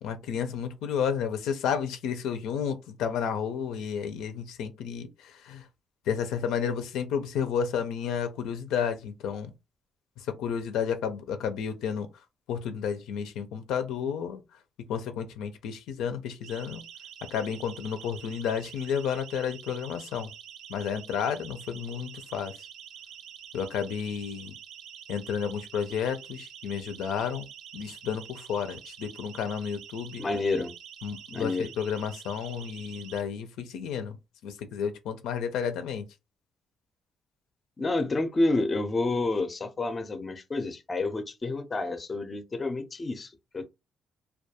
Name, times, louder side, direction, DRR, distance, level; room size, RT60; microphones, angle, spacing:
voice 1, 0.0-5.7 6.1-9.5 10.2-12.1 12.5-14.4 14.9-16.8 17.3-20.3 20.7-22.7 23.5-24.5 25.1-27.5 27.7-30.2 31.0-34.2 34.4-36.0, left 7 dB, 90° left, 0.4 m, -31 dB
Siren, 16.4-33.2, right 9 dB, 85° right, 0.3 m, -47 dB
voice 2, 30.2-30.7 31.3-31.7 37.8-43.7, left 2 dB, 30° left, 0.5 m, -29 dB
2.2 x 2.2 x 2.7 m
cardioid pair, 90°, 0 cm